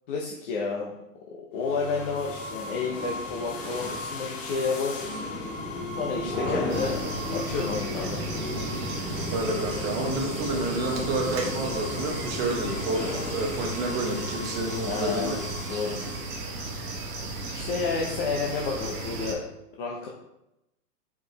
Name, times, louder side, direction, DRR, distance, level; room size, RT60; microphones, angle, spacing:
voice 1, 0.1-0.9 1.3-5.2 5.9-8.2 14.8-15.4 15.7-16.0 17.5-19.4 19.8-20.1, left 4 dB, 35° left, -3 dB, 0.7 m, -30 dB
sound 1, 1.6-16.4, left 2 dB, 55° left, 1.6 m, -34 dB
sound 2, 6.7-19.3, right 2 dB, 40° right, 1.4 m, -35 dB
voice 2, 9.3-15.4, right 2 dB, 20° right, 1 dB, 1.0 m, -29 dB
5.0 x 4.8 x 4.0 m, 0.88 s
hypercardioid pair, 145°, 48 cm